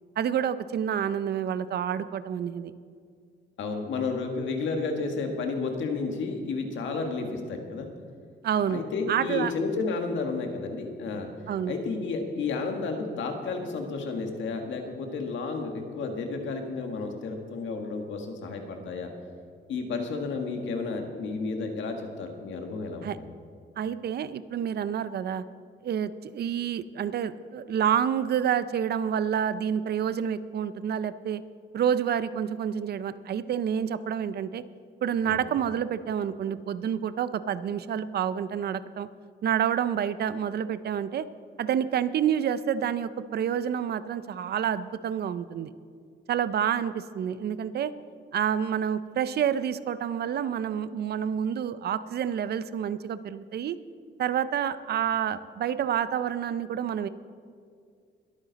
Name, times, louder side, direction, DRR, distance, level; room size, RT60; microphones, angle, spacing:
voice 1, 0.2-2.7 8.4-8.8 9.1-9.5 11.5-11.7 23.0-23.2 23.8-25.4 25.8-31.4 31.7-34.6 35.0-39.1 39.4-41.2 41.6-45.7 46.3-47.9 48.3-53.8 54.2-57.1, right 9 dB, 55° right, 14 dB, 0.5 m, -28 dB
voice 2, 3.6-7.9 8.7-11.3 11.6-19.1 19.7-23.1 35.2-35.4, left 4 dB, 80° left, 4 dB, 1.7 m, -32 dB
21.5 x 9.1 x 4.1 m, 2.2 s
cardioid pair, 145°, 19 cm